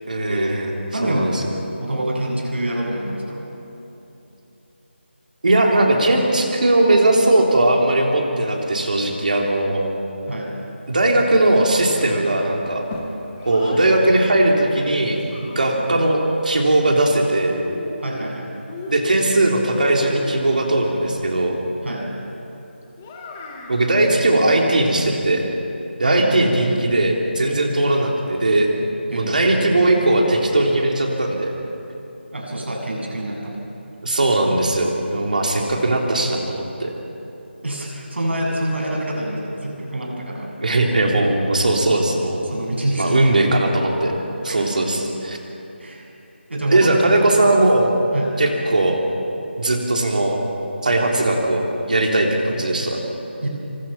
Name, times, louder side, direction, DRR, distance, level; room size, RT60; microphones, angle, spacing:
voice 1, 0.1-0.7 1.0-1.4 5.4-9.8 10.9-12.8 13.5-17.6 18.9-21.6 23.7-25.5 26.0-28.7 29.1-31.5 34.0-36.9 40.6-42.4 43.0-44.1 44.4-45.4 46.7-47.9 48.4-49.0 49.6-50.4 50.8-53.0, right 2 dB, 45° right, 0 dB, 3.6 m, -19 dB
voice 2, 0.9-1.3 1.8-3.5 10.3-10.5 15.7-15.9 18.0-18.5 21.8-22.1 26.0-26.5 29.1-29.6 32.3-33.6 37.6-40.6 42.5-43.4 44.5-44.6 45.8-46.1 46.5-46.9 48.1-48.4 53.4-53.5, right 1 dB, 70° right, -1 dB, 8.0 m, -26 dB
Child speech kid speaking, 11.9-13.9 14.8-16.0 17.2-18.3 18.7-20.4 23.0-23.8, left 2 dB, 10° left, 1.0 m, -35 dB
26.0 x 24.5 x 5.9 m, 2.9 s
figure-of-eight pair, 180°, 6 cm